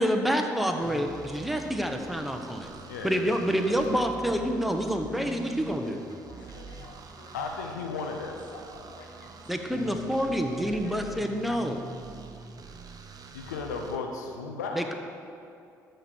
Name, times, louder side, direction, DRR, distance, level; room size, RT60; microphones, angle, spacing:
voice 1, 0.0-2.7 3.0-6.0 9.5-11.9 14.7-14.9, equal, ahead, 4 dB, 1.2 m, -28 dB
sound 1, 0.8-14.0, right 4 dB, 45° right, 0.9 m, -45 dB
voice 2, 2.9-3.4 6.4-6.6 7.3-8.4 9.0-9.3 13.3-14.8, left 4 dB, 85° left, 3 dB, 0.9 m, -35 dB
voice 3, 3.4-3.8 5.8-7.3 8.5-9.1 9.4-10.8 11.3-11.4, left 2 dB, 60° left, 1 dB, 1.7 m, -51 dB
12.5 x 4.5 x 6.5 m, 2.5 s
hypercardioid pair, 50°, 9 cm